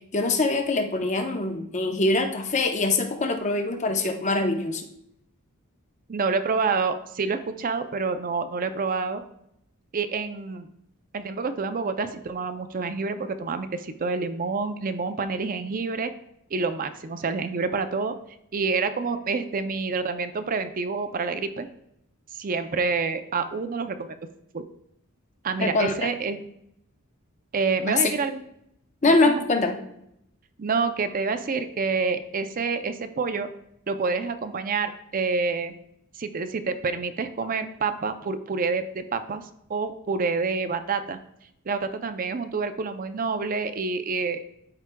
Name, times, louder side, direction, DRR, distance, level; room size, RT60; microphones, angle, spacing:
voice 1, 0.1-4.8 25.6-26.1 27.9-28.1 29.0-29.8, left 2 dB, 30° left, 5 dB, 0.7 m, -23 dB
voice 2, 6.1-9.2 9.9-10.7 11.1-16.1 16.5-18.2 18.5-21.7 22.3-24.2 24.5-24.6 25.4-26.4 27.5-28.4 29.1-29.4 30.6-33.5 33.9-35.7 36.1-41.2 41.7-44.4, right 4 dB, 40° right, 9 dB, 0.5 m, -28 dB
13.0 x 4.8 x 2.2 m, 0.76 s
head